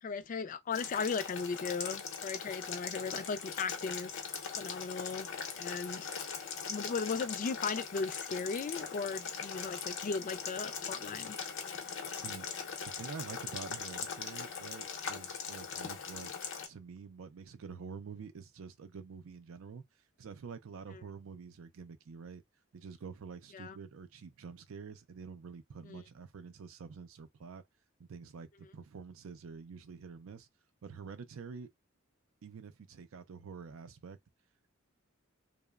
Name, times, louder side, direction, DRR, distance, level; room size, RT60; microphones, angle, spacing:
voice 1, 0.0-4.1 4.6-5.3 5.6-6.1 6.7-11.4 20.9-21.0 23.5-23.8 25.8-26.0, left 5 dB, 40° left, 0.4 m, -37 dB
Boiling, 0.7-16.7, left 6 dB, 70° left, 0.7 m, -40 dB
voice 2, 11.7-12.5 13.0-16.3 16.7-19.8 20.2-22.4 22.7-27.6 28.0-30.5 30.8-31.7 32.4-34.2, right 5 dB, 80° right, 0.4 m, -47 dB
2.9 x 2.0 x 2.3 m
head